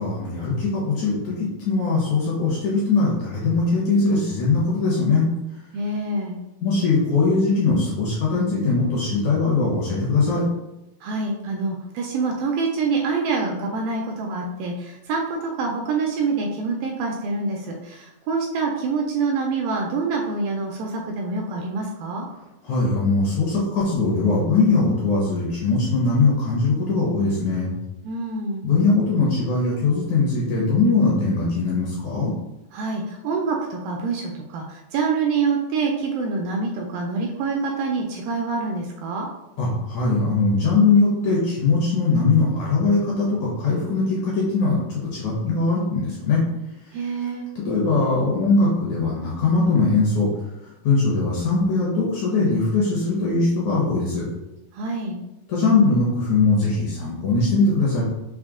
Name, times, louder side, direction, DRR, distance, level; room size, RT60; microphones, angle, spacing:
voice 1, 0.0-5.3 6.6-10.4 22.6-27.7 28.6-32.3 39.6-46.4 47.6-50.3 50.8-54.2 55.5-58.0, left 3 dB, 70° left, -5 dB, 1.9 m, -21 dB
voice 2, 5.7-6.4 11.0-22.3 28.0-28.6 32.7-39.3 46.9-47.4 54.7-55.2, right 4 dB, 80° right, 0 dB, 2.1 m, -26 dB
6.1 x 2.1 x 3.6 m, 0.96 s
omnidirectional pair, 4.4 m